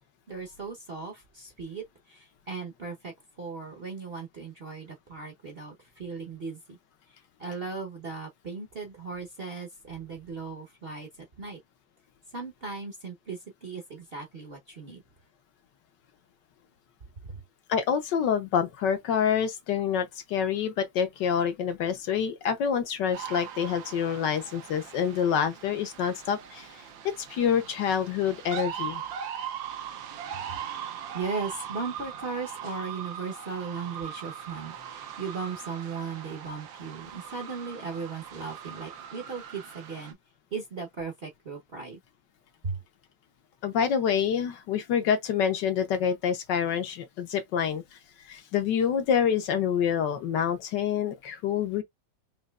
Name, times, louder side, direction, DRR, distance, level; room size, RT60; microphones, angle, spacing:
voice 1, 0.3-6.8 7.1-11.6 12.3-15.0 17.2-17.4 30.5-30.6 31.1-40.2 40.5-42.0 42.6-42.8, right 4 dB, 40° right, 0.9 m, -37 dB
voice 2, 17.7-26.7 27.2-29.0 43.6-47.8 48.3-51.8, left 8 dB, 65° left, 1.4 m, -27 dB
sound 1, 23.1-40.1, right 8 dB, 75° right, 1.6 m, -40 dB
5.3 x 2.9 x 2.4 m
omnidirectional pair, 2.1 m